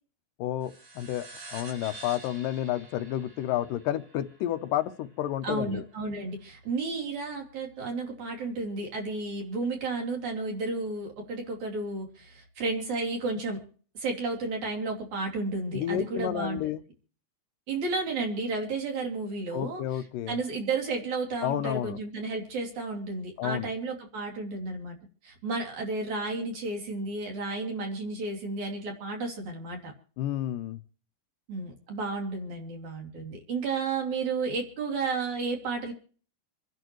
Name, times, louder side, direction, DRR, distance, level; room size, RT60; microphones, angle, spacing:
voice 1, 0.4-5.8 15.7-16.8 19.5-20.4 21.4-22.0 23.4-23.7 30.2-30.8, left 12 dB, 80° left, 10 dB, 2.3 m, -31 dB
sound 1, 0.6-5.5, right 2 dB, 80° right, 6.2 m, -48 dB
voice 2, 5.4-13.6 13.9-16.6 17.7-25.0 25.2-29.9 31.5-35.9, right 3 dB, 60° right, 1 dB, 4.2 m, -32 dB
27.5 x 10.5 x 3.1 m, 0.43 s
omnidirectional pair, 4.0 m